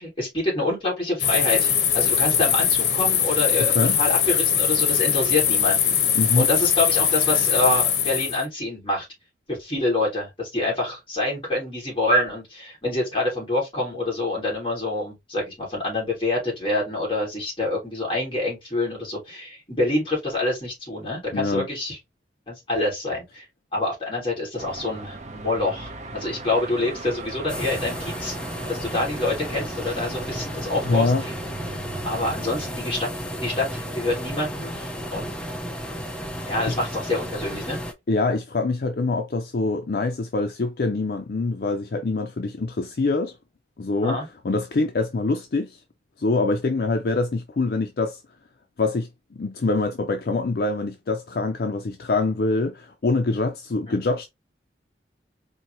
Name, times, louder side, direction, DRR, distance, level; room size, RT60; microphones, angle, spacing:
voice 1, 0.0-6.0 6.4-9.1 9.5-22.0 22.5-23.4 23.7-28.3 28.7-31.3 32.0-33.1 33.4-35.3 36.5-37.8 44.0-44.3 53.9-54.0, left 2 dB, 30° left, 2.7 m, -26 dB
sound 1, 1.2-8.4, left 8 dB, 80° left, 0.8 m, -21 dB
voice 2, 6.1-6.5 21.3-21.7 30.8-31.2 36.4-36.8 38.1-43.3 43.8-44.2 44.4-45.8 46.2-48.2 48.8-54.2, left 3 dB, 55° left, 0.5 m, -24 dB
Car passing by / Traffic noise roadway noise / Engine, 24.6-32.7, right 2 dB, 40° right, 0.6 m, -38 dB
sound 2, 27.5-37.9, equal, 5° left, 0.5 m, -33 dB
4.5 x 2.7 x 2.9 m
head